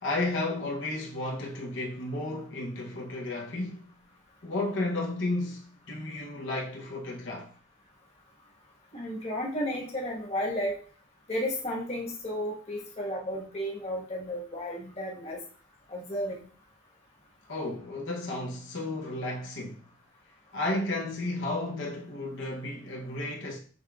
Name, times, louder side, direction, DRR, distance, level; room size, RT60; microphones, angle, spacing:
voice 1, 0.0-3.8 4.4-7.5 17.5-19.8 20.5-23.6, left 2 dB, 70° left, 0.8 m, -33 dB
voice 2, 8.9-10.7 11.3-15.4 15.9-16.4, equal, 30° left, 1.2 m, -33 dB
6.6 x 3.3 x 2.4 m
head